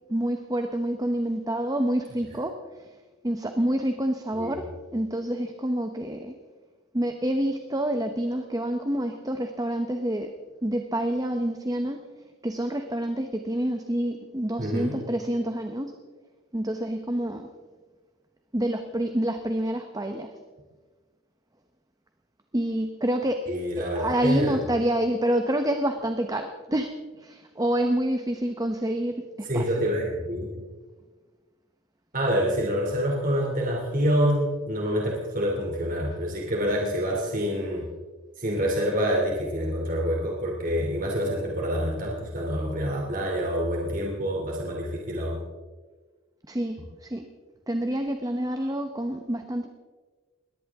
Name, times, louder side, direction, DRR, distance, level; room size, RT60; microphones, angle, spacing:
voice 1, 0.1-3.0 3.2-6.3 6.9-10.3 10.6-12.1 12.4-15.9 16.5-17.5 18.5-20.4 22.5-23.5 23.8-29.8 46.5-47.2 47.7-49.7, right 1 dB, 15° right, 6 dB, 0.9 m, -28 dB
voice 2, 14.6-14.9 23.5-24.6 29.4-30.5 32.1-37.8 38.4-45.4, equal, 40° right, -2 dB, 2.8 m, -27 dB
22.0 x 18.0 x 3.6 m, 1.4 s
head